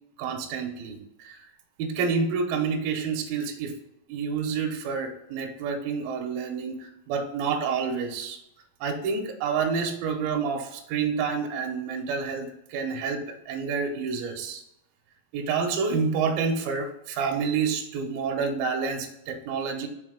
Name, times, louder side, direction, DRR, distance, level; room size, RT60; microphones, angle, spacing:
voice 1, 0.2-1.4 1.8-3.7 4.1-8.4 8.8-14.6 15.3-19.9, right 5 dB, 75° right, 2 dB, 2.3 m, -28 dB
6.3 x 4.1 x 5.0 m, 0.84 s
omnidirectional pair, 4.9 m